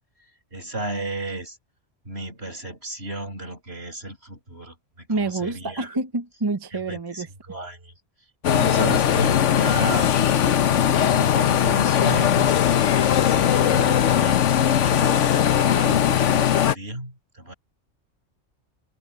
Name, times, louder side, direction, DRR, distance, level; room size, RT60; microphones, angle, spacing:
voice 1, 0.5-1.6 2.1-5.9 6.7-7.9 8.4-10.2 11.0-12.6 12.9-15.2 15.6-17.5, right 1 dB, 50° right, 8.1 m, -33 dB
voice 2, 5.1-7.3, right 3 dB, 20° right, 0.8 m, -27 dB
sound 1, 8.4-16.7, left 10 dB, 70° left, 1.1 m, -19 dB
open air
omnidirectional pair, 1.3 m